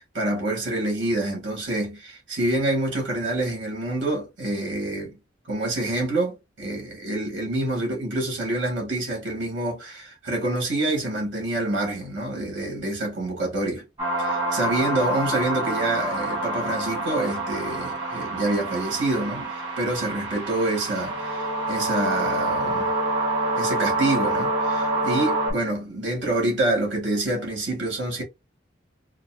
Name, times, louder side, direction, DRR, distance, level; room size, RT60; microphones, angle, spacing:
voice 1, 0.0-5.1 5.5-13.8 14.2-22.9 23.6-28.2, right 2 dB, 80° right, 1.7 m, -27 dB
sound 1, 14.0-25.5, right 2 dB, 30° right, 1.5 m, -27 dB
3.9 x 2.1 x 2.3 m
head